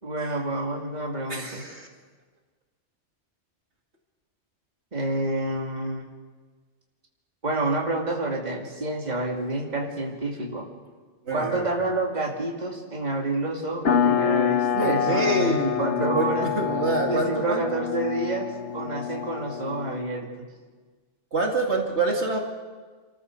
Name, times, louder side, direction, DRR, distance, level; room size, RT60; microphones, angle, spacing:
voice 1, 0.0-1.6 4.9-6.1 7.4-10.7 11.3-16.5 17.1-18.5 18.7-20.3, right 2 dB, 40° right, -1 dB, 2.6 m, -28 dB
voice 2, 1.3-1.9 11.3-11.6 14.7-17.6 21.3-22.4, right 2 dB, 70° right, 1 dB, 2.6 m, -26 dB
sound 1, 13.9-20.1, left 7 dB, 75° left, 1.4 m, -26 dB
28.0 x 14.0 x 6.7 m, 1.4 s
omnidirectional pair, 1.2 m